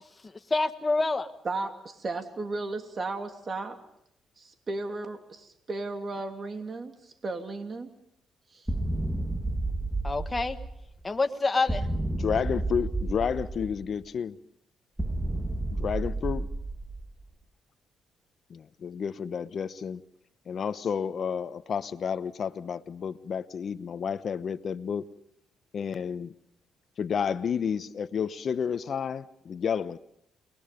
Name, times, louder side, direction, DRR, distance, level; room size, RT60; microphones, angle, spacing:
voice 1, 0.5-1.3 10.0-10.6 11.0-11.9, left 3 dB, 25° left, 7 dB, 1.6 m, -26 dB
voice 2, 1.4-3.8 4.4-7.9 8.5-8.6, right 3 dB, 40° right, 5 dB, 2.8 m, -35 dB
sound 1, 8.7-11.0 11.7-14.0 15.0-17.2, right 2 dB, 5° right, 1.8 m, -31 dB
voice 3, 12.1-14.4 15.7-16.5 18.5-20.0 20.5-25.1 25.7-26.3 27.0-30.0, left 7 dB, 55° left, 12 dB, 1.0 m, -31 dB
29.5 x 21.0 x 5.3 m, 0.77 s
cardioid pair, 90°, 0 cm